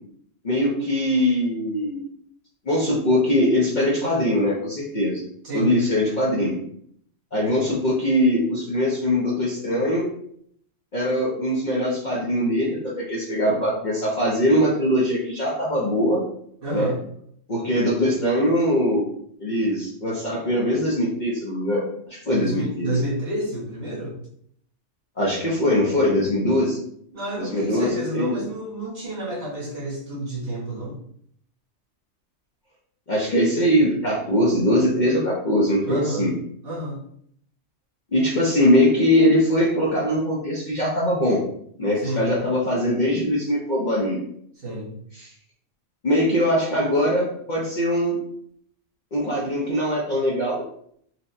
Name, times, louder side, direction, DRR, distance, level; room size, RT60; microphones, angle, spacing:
voice 1, 0.4-2.0 2.7-5.2 5.5-6.5 7.3-10.1 10.9-16.2 16.7-16.9 17.5-19.1 19.4-21.8 22.1-22.9 25.2-26.9 27.4-28.4 33.1-36.3 38.1-41.4 41.8-44.2 45.2-45.3 46.0-48.2 49.1-50.6, equal, 50° left, -5 dB, 0.6 m, -21 dB
voice 2, 5.4-5.8 9.8-9.9 16.6-17.0 22.3-24.2 27.1-30.9 35.8-36.3 36.6-37.0 42.0-42.3 44.6-44.9, right 1 dB, 50° right, -6 dB, 1.0 m, -29 dB
4.1 x 2.1 x 2.6 m, 0.67 s
omnidirectional pair, 1.4 m